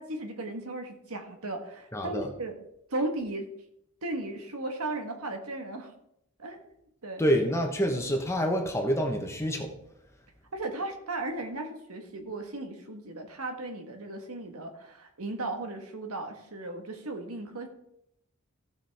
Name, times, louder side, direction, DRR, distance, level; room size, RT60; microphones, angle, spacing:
voice 1, 0.0-2.5 2.9-3.5 4.0-5.9 6.4-6.6 7.0-7.3 10.5-17.7, right 2 dB, 75° right, 4 dB, 1.6 m, -36 dB
voice 2, 1.9-2.3 7.2-9.8, equal, 15° left, 3 dB, 1.1 m, -27 dB
16.0 x 6.0 x 3.5 m, 0.76 s
head